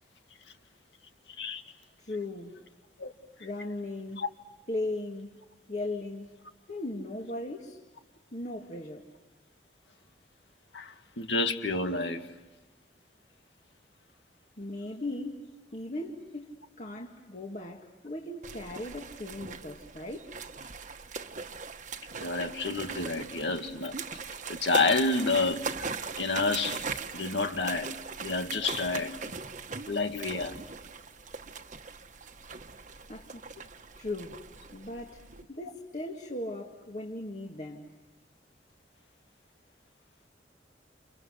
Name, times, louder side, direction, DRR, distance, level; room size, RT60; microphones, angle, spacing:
voice 1, 2.0-2.6 3.4-4.2 4.7-5.4 5.7-6.3 6.7-7.8 8.3-9.1 14.6-15.4 15.7-20.3 33.1-33.5 34.0-34.4 34.7-35.2 35.5-37.9, left 2 dB, 45° left, 2.0 m, -38 dB
voice 2, 10.7-12.3 22.2-24.0 24.5-26.9 27.1-27.9 28.2-29.1 29.9-30.6, left 3 dB, 85° left, 2.0 m, -29 dB
sound 1, 18.4-35.4, right 5 dB, 45° right, 1.2 m, -40 dB
30.0 x 29.5 x 6.5 m
head